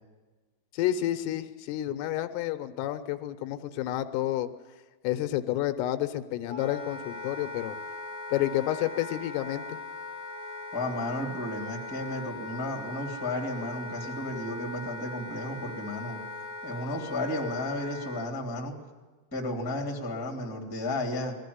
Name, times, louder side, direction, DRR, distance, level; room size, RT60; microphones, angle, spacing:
voice 1, 0.7-4.5 5.0-7.8 8.3-9.8, left 13 dB, 80° left, 9 dB, 3.5 m, -30 dB
Wind instrument woodwind instrument, 6.5-18.3, left 2 dB, 35° left, 0.8 m, -40 dB
voice 2, 10.7-16.2 16.6-18.8 19.3-21.4, left 1 dB, 10° left, 1 dB, 1.5 m, -33 dB
21.5 x 15.0 x 9.6 m, 1.3 s
omnidirectional pair, 5.9 m